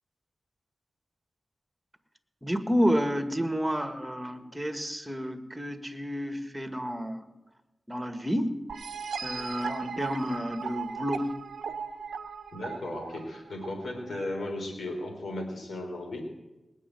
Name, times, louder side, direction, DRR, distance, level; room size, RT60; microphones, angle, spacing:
voice 1, 2.4-7.3 7.9-8.6 9.2-11.3, equal, 10° right, 9 dB, 1.6 m, -30 dB
sound 1, 8.7-14.2, right 6 dB, 90° right, 0.8 m, -37 dB
voice 2, 12.5-16.2, left 1 dB, 80° left, 3 dB, 3.5 m, -35 dB
19.5 x 6.5 x 9.2 m, 1.1 s
cardioid pair, 40°, 0 cm